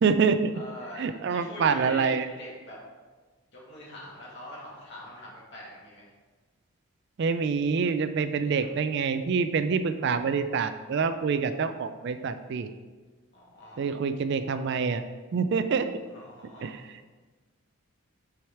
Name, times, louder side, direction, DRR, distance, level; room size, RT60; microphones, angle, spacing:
voice 1, 0.0-0.5 1.0-2.3 7.2-12.7 13.8-15.0 15.3-15.9 16.6-16.8, right 5 dB, 50° right, 10 dB, 0.3 m, -26 dB
voice 2, 0.5-2.8 3.5-6.1 8.3-8.6 13.3-13.8 16.1-16.7, left 1 dB, 50° left, -6 dB, 2.1 m, -43 dB
6.2 x 4.9 x 4.5 m, 1.3 s
head